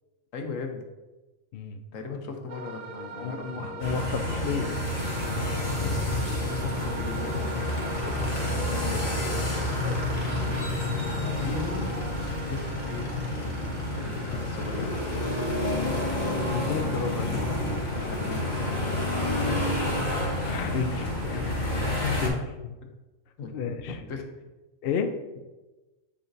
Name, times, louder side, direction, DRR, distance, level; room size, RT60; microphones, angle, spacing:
voice 1, 0.3-0.9 1.9-3.8 5.8-8.5 10.4-10.8 11.2-11.9 12.5-13.1 13.9-15.2 18.0-18.9 19.3-20.0 21.3-21.6 23.4-23.5 24.1-24.5, left 4 dB, 75° left, 4 dB, 1.2 m, -39 dB
sound 1, 2.5-14.6, right 3 dB, 75° right, 1.0 m, -41 dB
voice 2, 3.2-4.8 5.2-5.6 8.7-9.6 9.8-10.0 16.3-17.5 20.4-21.1 22.1-22.8 23.5-24.0 24.8-25.1, left 5 dB, 60° left, 7 dB, 0.6 m, -32 dB
sound 2, 3.8-22.3, left 1 dB, 40° left, 1.2 m, -29 dB
7.7 x 5.0 x 2.6 m, 1.1 s
omnidirectional pair, 1.4 m